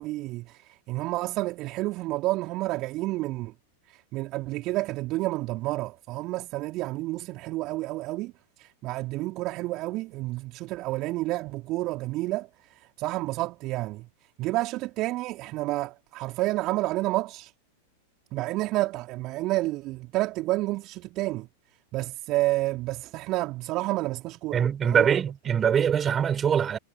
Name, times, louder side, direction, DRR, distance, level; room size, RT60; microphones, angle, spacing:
voice 1, 0.0-3.5 3.8-14.1 14.4-17.5 18.3-21.5 21.9-25.2, right 19 dB, 40° right, 3.2 m, -30 dB
voice 2, 24.5-26.8, right 8 dB, 25° right, 5.9 m, -23 dB
figure-of-eight pair, 95°, 0 cm